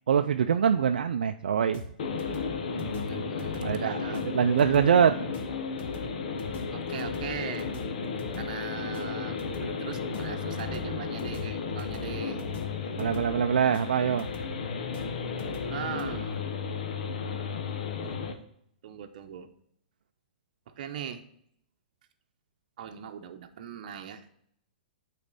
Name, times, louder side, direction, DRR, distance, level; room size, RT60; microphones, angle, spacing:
voice 1, 0.1-1.8 3.6-5.3 13.0-14.3, right 7 dB, 85° right, 7 dB, 0.4 m, -24 dB
sound 1, 1.7-16.2, left 4 dB, 25° left, 1.2 m, -45 dB
sound 2, 2.0-18.3, left 5 dB, 60° left, 1.0 m, -34 dB
voice 2, 2.7-4.2 6.7-7.7 8.3-12.4 15.7-16.5 18.8-19.5 20.7-21.2 22.8-24.3, right 8 dB, 60° right, 7 dB, 0.9 m, -40 dB
8.7 x 4.2 x 4.0 m, 0.70 s
hypercardioid pair, 140°, 5 cm